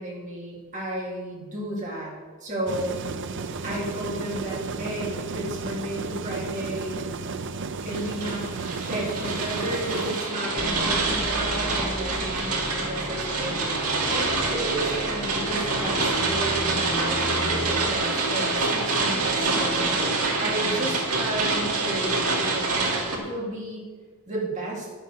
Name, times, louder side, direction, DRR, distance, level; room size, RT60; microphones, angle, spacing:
voice 1, 0.0-2.1 2.4-3.1 3.6-7.0 7.8-8.5 8.9-23.9 24.3-24.9, right 1 dB, 35° right, -5 dB, 4.0 m, -33 dB
sound 1, 2.7-10.2, right 4 dB, 55° right, 0.7 m, -33 dB
sound 2, 7.9-23.2, right 3 dB, 80° right, 2.6 m, -26 dB
sound 3, 10.6-17.9, equal, 10° left, 0.8 m, -36 dB
10.5 x 7.6 x 7.5 m, 1.4 s
head